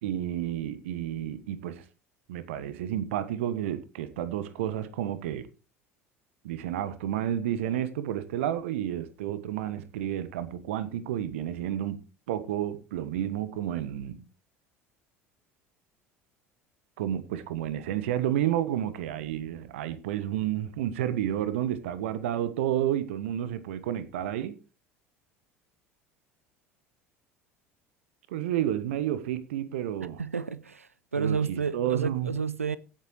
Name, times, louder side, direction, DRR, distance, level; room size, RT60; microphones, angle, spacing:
voice 1, 0.0-1.8 2.3-5.5 6.4-12.0 12.3-14.2 17.0-24.6 28.3-30.2 31.1-32.3, right 11 dB, 65° right, 1.2 m, -31 dB
voice 2, 30.2-32.8, right 5 dB, 85° right, 0.5 m, -30 dB
17.0 x 8.5 x 3.1 m
figure-of-eight pair, 65°, 7 cm